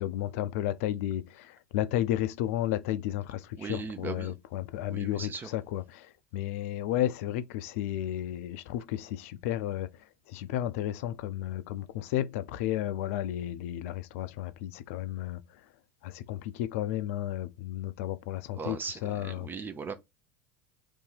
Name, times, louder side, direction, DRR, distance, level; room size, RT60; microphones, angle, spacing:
voice 1, 0.0-9.9 10.3-15.4 16.0-19.5, left 12 dB, 65° left, 0.4 m, -33 dB
voice 2, 3.6-4.3 4.9-5.5 18.5-19.9, right 5 dB, 25° right, 0.6 m, -38 dB
2.8 x 2.6 x 3.9 m
hypercardioid pair, 80°, 8 cm